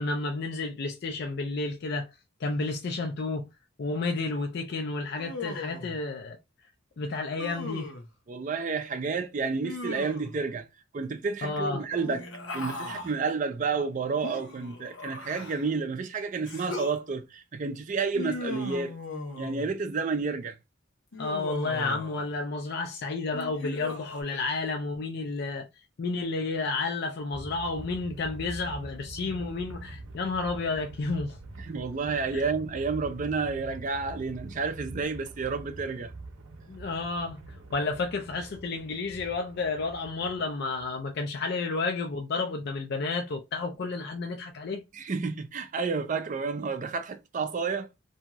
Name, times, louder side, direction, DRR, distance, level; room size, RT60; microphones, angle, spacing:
voice 1, 0.0-2.1 2.4-3.5 3.8-6.4 7.0-7.9 11.4-11.9 21.2-25.7 26.0-31.4 32.3-32.4 36.7-37.4 37.7-44.8, left 3 dB, 55° left, 0.4 m, -31 dB
Human voice, 5.2-6.0 7.4-8.1 9.6-10.4 12.0-13.1 14.2-15.7 16.5-17.0 18.1-19.7 21.1-22.3 23.3-24.2, left 2 dB, 75° left, 0.9 m, -38 dB
voice 2, 8.3-10.7 10.9-12.3 12.5-18.9 19.4-20.6 31.6-36.1 44.9-47.9, right 4 dB, 40° right, 0.4 m, -30 dB
sound 1, 11.9-16.0, right 1 dB, 25° left, 0.9 m, -51 dB
sound 2, 27.3-41.3, right 2 dB, 85° right, 0.6 m, -45 dB
2.7 x 2.3 x 2.9 m
head